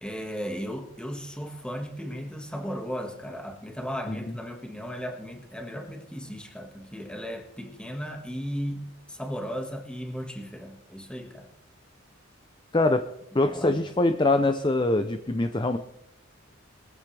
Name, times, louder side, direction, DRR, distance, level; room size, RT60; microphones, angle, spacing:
voice 1, 0.0-11.5 13.3-13.9, equal, 5° left, 3 dB, 1.7 m, -36 dB
voice 2, 12.7-13.0 13.3-15.8, left 2 dB, 25° left, 8 dB, 0.6 m, -23 dB
21.5 x 14.5 x 3.4 m, 0.79 s
head